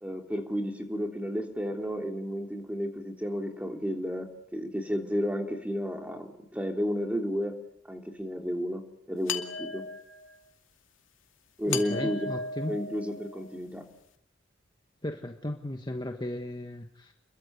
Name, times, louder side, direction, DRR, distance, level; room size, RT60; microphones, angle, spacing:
voice 1, 0.0-4.3 4.5-7.5 7.9-8.8 9.1-9.8 11.6-12.3 12.7-13.8, equal, 5° right, 3 dB, 3.2 m, -32 dB
sound 1, 9.3-10.4 11.7-13.6, left 4 dB, 80° left, 2.4 m, -36 dB
voice 2, 11.7-12.7 15.0-17.1, left 1 dB, 20° left, 4 dB, 1.3 m, -35 dB
29.5 x 22.5 x 8.1 m, 0.79 s
head